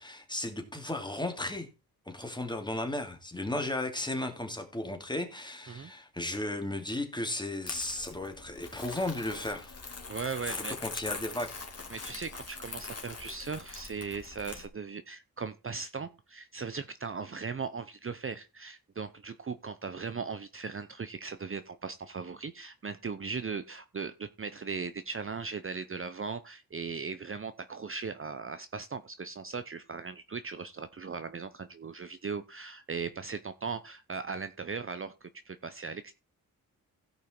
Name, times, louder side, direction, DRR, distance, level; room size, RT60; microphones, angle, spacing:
voice 1, 0.0-1.7 2.1-9.7 10.4-11.5, left 1 dB, 10° left, 2.8 m, -35 dB
Crumpling crinkling, 7.7-14.7, left 4 dB, 40° left, 2.7 m, -42 dB
voice 2, 10.1-10.8 11.9-36.2, right 5 dB, 35° right, 0.8 m, -38 dB
16.0 x 5.5 x 4.5 m
cardioid pair, 80°, 37 cm